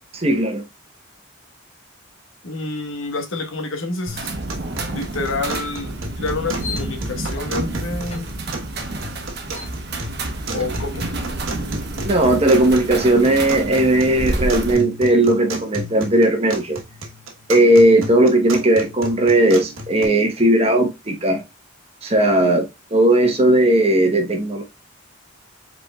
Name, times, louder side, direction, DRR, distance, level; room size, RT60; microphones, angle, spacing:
voice 1, 0.1-0.6 12.0-16.8 17.5-21.4 22.0-24.6, right 1 dB, 30° right, 1.0 m, -17 dB
voice 2, 2.4-4.3 4.9-8.3 10.5-11.1, left 3 dB, 80° left, 1.2 m, -28 dB
sound 1, 4.1-14.8, right 2 dB, 50° right, 1.0 m, -29 dB
sound 2, 4.1-20.1, right 1 dB, 85° right, 1.2 m, -34 dB
sound 3, 6.4-11.9, left 3 dB, 30° left, 1.7 m, -40 dB
4.9 x 4.3 x 2.3 m
head